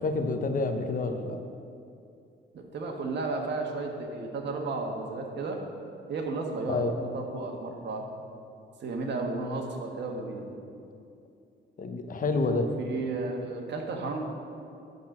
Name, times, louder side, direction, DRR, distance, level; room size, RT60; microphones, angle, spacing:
voice 1, 0.0-1.4 6.7-6.9 11.8-12.7, left 3 dB, 45° left, 6 dB, 0.9 m, -28 dB
voice 2, 2.5-5.6 6.1-8.0 8.8-10.4 12.5-14.2, right 3 dB, 60° right, 2 dB, 1.4 m, -33 dB
12.0 x 4.0 x 6.1 m, 2.5 s
cardioid pair, 90°, 20 cm